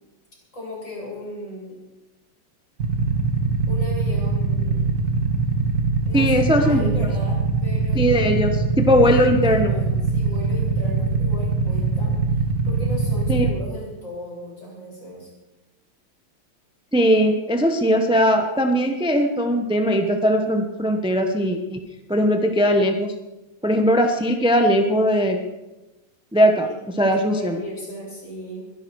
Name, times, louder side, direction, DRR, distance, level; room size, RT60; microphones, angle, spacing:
voice 1, 0.5-1.8 3.7-5.0 6.1-8.0 9.0-12.4 12.6-15.3 26.6-26.8 27.0-28.6, left 1 dB, 35° left, -5 dB, 7.9 m, -36 dB
Motorcycle / Idling, 2.8-13.5, right 4 dB, 50° right, 2.0 m, -22 dB
voice 2, 6.1-7.1 7.9-9.7 13.3-13.5 16.9-21.8 22.1-23.1 23.6-25.4 26.3-26.7 27.0-27.6, equal, 5° right, 4 dB, 0.5 m, -19 dB
22.5 x 12.0 x 4.8 m, 1.0 s
omnidirectional pair, 2.3 m